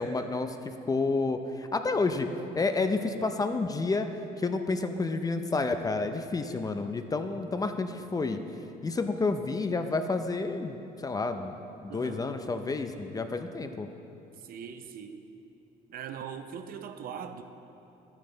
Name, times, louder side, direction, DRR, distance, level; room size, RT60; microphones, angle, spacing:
voice 1, 0.0-2.3 2.6-4.1 4.4-8.4 8.8-11.5 11.8-13.9, left 3 dB, 20° left, 7 dB, 0.5 m, -30 dB
voice 2, 11.9-12.3 14.4-15.2 15.9-17.4, right 7 dB, 60° right, 8 dB, 0.7 m, -40 dB
12.0 x 9.0 x 3.9 m, 2.9 s
cardioid pair, 110°, 17 cm